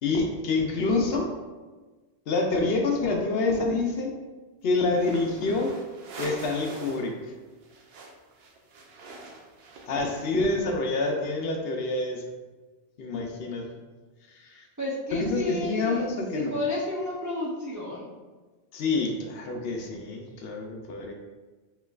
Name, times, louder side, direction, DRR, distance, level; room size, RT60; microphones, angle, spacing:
voice 1, 0.0-1.3 2.3-4.2 4.6-5.8 6.2-7.3 9.9-12.3 13.0-13.7 14.3-14.7 15.1-16.5 18.7-21.1, left 3 dB, 65° left, 2 dB, 0.8 m, -27 dB
sound 1, 4.9-7.1 7.4-10.5, right 2 dB, 65° right, 0.8 m, -43 dB
voice 2, 14.8-16.0 16.3-18.1, left 2 dB, 25° right, -6 dB, 0.4 m, -31 dB
5.1 x 3.1 x 2.4 m, 1.3 s
omnidirectional pair, 1.1 m